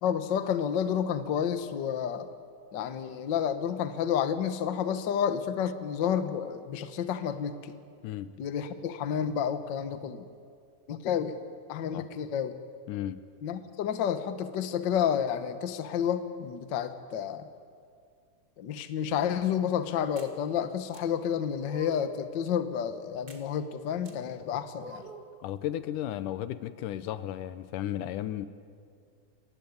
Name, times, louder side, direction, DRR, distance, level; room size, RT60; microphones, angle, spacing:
voice 1, 0.0-2.3 2.7-7.7 8.4-10.3 10.9-11.3 11.7-12.6 13.4-17.5 18.6-25.0, left 8 dB, 60° left, 9 dB, 1.2 m, -30 dB
voice 2, 12.9-13.2 25.4-28.5, left 12 dB, 90° left, 13 dB, 2.4 m, -34 dB
sound 1, 20.2-20.3 20.9-21.0 21.6-22.2 23.3-23.4 24.0-24.2 24.8-25.3, right 2 dB, 25° right, 1.3 m, -46 dB
28.5 x 16.0 x 9.5 m, 2.2 s
omnidirectional pair, 3.6 m